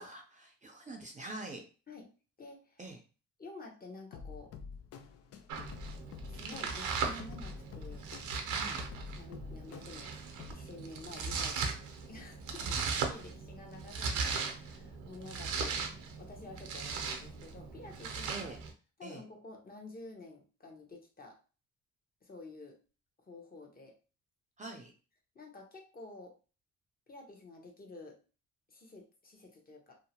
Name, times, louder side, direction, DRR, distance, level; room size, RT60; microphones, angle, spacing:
voice 1, 0.0-1.6 2.8-3.0 8.5-8.8 12.6-12.8 18.3-18.6 19.0-19.2 24.6-24.9, right 2 dB, 25° right, 2 dB, 0.5 m, -45 dB
voice 2, 2.4-2.8 3.4-4.5 6.3-8.1 9.2-10.1 10.5-11.8 12.1-15.8 16.2-18.5 19.0-21.4 22.2-22.8 23.2-23.9 25.3-26.3 27.1-28.2 28.7-30.0, left 2 dB, 30° left, 0 dB, 0.9 m, -50 dB
sound 1, 4.1-10.5, left 5 dB, 55° left, 0.4 m, -48 dB
Domestic sounds home sounds, 5.5-18.7, right 5 dB, 75° right, 0.7 m, -38 dB
2.7 x 2.1 x 2.8 m, 0.35 s
cardioid pair, 90°, 30 cm